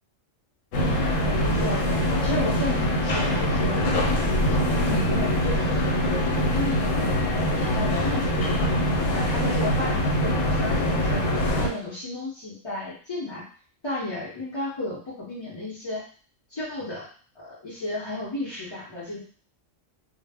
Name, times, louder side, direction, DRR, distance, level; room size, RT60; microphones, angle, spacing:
sound 1, 0.7-11.7, equal, 85° left, 1.0 m, -23 dB
voice 1, 0.8-1.9 2.2-3.8 4.5-8.3 8.6-8.7 9.1-11.2 11.5-13.4 13.8-16.0 16.5-17.1 17.3-19.2, left 2 dB, 30° left, -9 dB, 0.5 m, -33 dB
2.1 x 2.1 x 3.3 m, 0.42 s
omnidirectional pair, 1.3 m